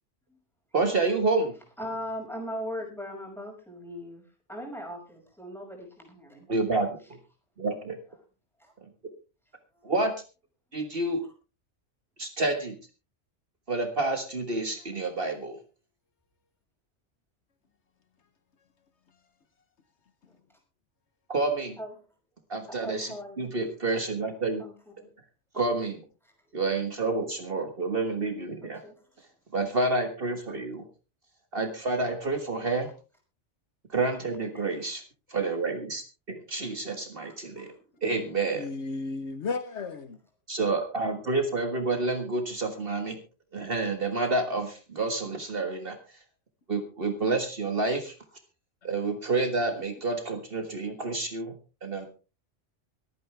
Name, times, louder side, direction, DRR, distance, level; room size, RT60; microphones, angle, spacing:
voice 1, 0.7-1.5 6.5-7.0 7.6-8.0 9.8-10.1 10.7-11.2 12.2-12.8 13.7-15.6 21.3-21.8 22.5-24.6 25.5-26.0 26.5-28.8 29.5-30.8 31.5-32.9 33.9-35.0 35.3-36.0 36.3-37.7 38.0-38.7 40.5-43.2 43.5-46.0 46.7-48.1 48.8-51.5 51.8-52.1, right 3 dB, 50° right, 1.8 m, -29 dB
voice 2, 1.8-6.5 8.6-8.7 21.8-21.9 22.7-23.5 24.6-25.1 25.5-25.6 26.2-26.3 28.6-29.1 34.6-34.7 37.2-37.7 38.0-38.5, equal, ahead, 5.8 m, -40 dB
voice 3, 38.5-40.2, left 4 dB, 70° left, 1.3 m, -33 dB
24.0 x 9.4 x 3.4 m
omnidirectional pair, 1.2 m